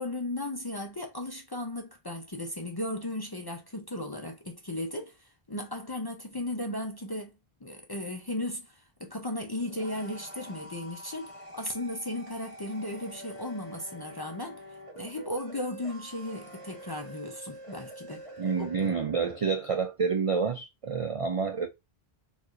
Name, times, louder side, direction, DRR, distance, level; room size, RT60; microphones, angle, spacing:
voice 1, 0.0-7.3 7.6-14.6 15.0-18.3 18.6-18.7, left 1 dB, 30° left, 0.4 m, -36 dB
sound 1, 9.4-19.8, right 1 dB, 30° right, 1.1 m, -46 dB
voice 2, 18.4-21.7, right 5 dB, 60° right, 0.3 m, -28 dB
4.5 x 2.4 x 2.4 m
omnidirectional pair, 1.1 m